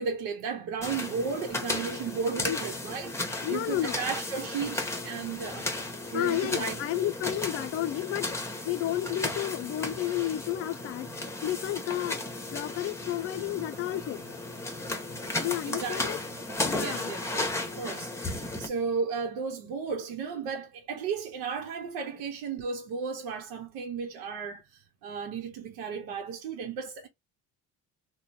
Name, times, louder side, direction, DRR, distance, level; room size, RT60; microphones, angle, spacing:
voice 1, 0.0-5.7 6.1-6.8 15.7-16.0 16.7-17.4 17.8-27.1, right 5 dB, 90° right, 0.9 m, -34 dB
sound 1, 0.8-18.7, left 2 dB, 10° left, 0.9 m, -35 dB
voice 2, 3.4-4.0 6.1-11.1 11.4-12.2 12.5-14.4 15.4-16.2 16.6-17.1, left 13 dB, 45° left, 0.4 m, -32 dB
3.0 x 2.2 x 4.1 m
cardioid pair, 105°, 33 cm